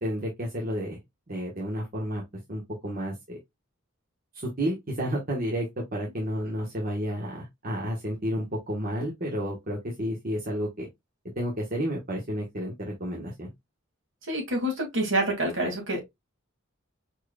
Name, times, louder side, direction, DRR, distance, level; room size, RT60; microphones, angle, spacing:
voice 1, 0.0-1.0 1.3-2.2 2.5-3.4 4.3-10.9 11.3-13.5, equal, 45° right, 1.2 m, -31 dB
voice 2, 14.3-16.0, right 1 dB, 70° right, 2.3 m, -27 dB
4.9 x 4.5 x 2.3 m
head